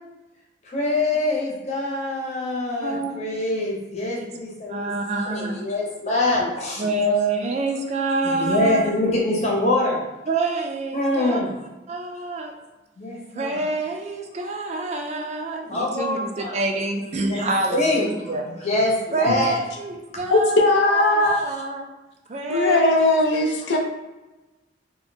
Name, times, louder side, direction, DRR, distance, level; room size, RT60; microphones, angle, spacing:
voice 1, 0.7-4.9 5.3-6.8 8.2-10.0 10.9-11.5 13.0-13.6 15.7-16.6 17.3-17.5 17.7-18.0 18.4-19.6 23.7-23.8, left 2 dB, 35° left, -3 dB, 0.9 m, -24 dB
voice 2, 2.8-3.2 4.7-5.6 6.8-8.8 10.3-11.4 11.9-12.5 13.4-18.5 19.1-21.9 22.3-23.2 23.7-23.8, right 2 dB, 35° right, 3 dB, 0.3 m, -27 dB
voice 3, 20.3-21.4 22.5-23.8, left 2 dB, 65° left, 2 dB, 0.5 m, -19 dB
2.8 x 2.2 x 4.1 m, 1.1 s
head